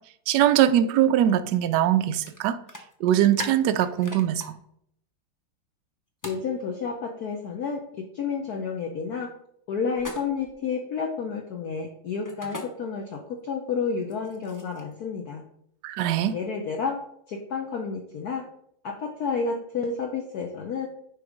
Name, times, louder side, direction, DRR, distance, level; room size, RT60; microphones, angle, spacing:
voice 1, 0.3-2.6 3.0-4.5 15.8-16.3, right 11 dB, 70° right, 10 dB, 1.0 m, -22 dB
sound 1, 2.3-2.4 2.7-4.5 6.2-6.4 9.9-10.5 12.2-12.7 14.0-14.9, left 1 dB, 30° left, 0.3 m, -38 dB
voice 2, 6.2-9.3 9.7-15.4 16.3-17.0 17.3-18.4 18.8-20.9, left 5 dB, 60° left, 2 dB, 1.1 m, -30 dB
9.6 x 3.2 x 5.0 m, 0.72 s
omnidirectional pair, 2.2 m